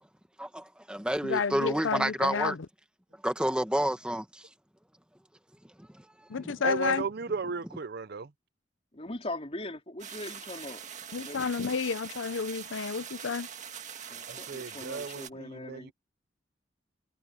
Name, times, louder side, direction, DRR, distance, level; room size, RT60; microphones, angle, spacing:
voice 1, 0.4-2.6 3.2-4.4 6.3-6.6, right 1 dB, 5° right, 1.2 m, -29 dB
voice 2, 1.2-2.6 6.3-7.0 11.1-13.5, left 5 dB, 85° left, 0.6 m, -30 dB
voice 3, 6.6-8.3 14.3-15.9, right 5 dB, 55° right, 0.6 m, -35 dB
voice 4, 8.9-10.8 11.2-11.5 14.1-15.9, left 1 dB, 30° left, 3.9 m, -40 dB
sound 1, 10.0-15.3, right 8 dB, 40° right, 1.9 m, -43 dB
head